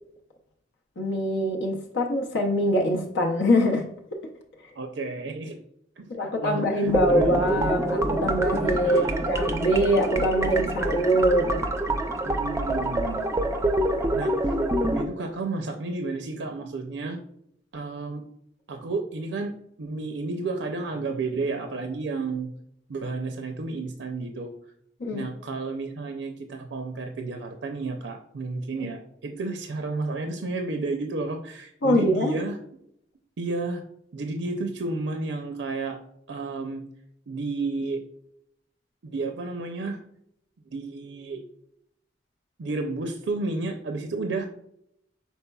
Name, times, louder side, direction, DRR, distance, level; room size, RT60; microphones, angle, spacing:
voice 1, 1.0-3.9 6.1-11.6 25.0-25.3 28.8-28.9 31.8-32.4, equal, 80° left, 0.7 m, -23 dB
voice 2, 4.8-5.6 6.0-7.3 8.8-9.2 12.2-13.3 14.1-14.6 14.9-17.2 17.7-18.2 18.7-22.5 22.9-24.5 25.1-32.6 33.4-33.8 34.1-36.0 36.3-36.8 37.3-38.0 39.0-40.0 40.7-41.4 42.6-44.5, right 3 dB, 85° right, 0.5 m, -31 dB
sound 1, 6.9-15.0, right 1 dB, 15° right, 0.4 m, -26 dB
5.4 x 4.2 x 2.3 m
head